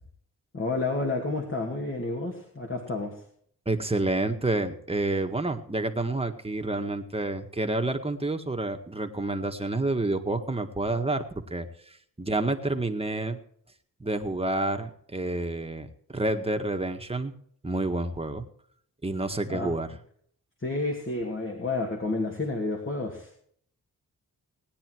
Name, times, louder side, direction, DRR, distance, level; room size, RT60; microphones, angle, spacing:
voice 1, 0.5-3.2 19.5-19.7 20.6-23.4, left 3 dB, 35° left, 2 dB, 2.5 m, -30 dB
voice 2, 3.7-11.2 11.5-11.7 12.2-13.4 14.0-17.3 17.6-18.5 19.0-19.9, right 2 dB, 15° right, 5 dB, 1.9 m, -29 dB
18.5 x 9.9 x 4.7 m, 0.63 s
cardioid pair, 75°, 35 cm